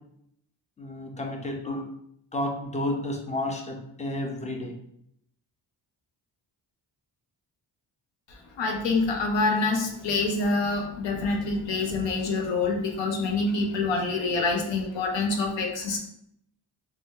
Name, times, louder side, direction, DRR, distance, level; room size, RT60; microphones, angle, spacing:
voice 1, 0.8-1.8 2.3-4.7, left 1 dB, 15° left, 2 dB, 0.4 m, -31 dB
voice 2, 8.6-16.0, left 3 dB, 85° left, 2 dB, 0.7 m, -26 dB
2.6 x 2.1 x 3.6 m, 0.72 s
cardioid pair, 105°, 43 cm